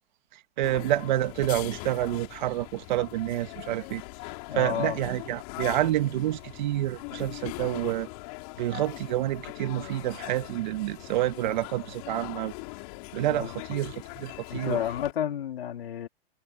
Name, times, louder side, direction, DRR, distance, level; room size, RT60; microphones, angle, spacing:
sound 1, 0.6-15.1, left 28 dB, 40° left, 5.2 m, -41 dB
voice 1, 0.6-4.0 4.5-8.1 8.6-12.5 13.1-14.8, right 15 dB, 50° right, 1.8 m, -28 dB
voice 2, 4.5-5.0 13.3-13.7 14.5-16.1, left 10 dB, 80° left, 2.7 m, -31 dB
hypercardioid pair, 160°, 29 cm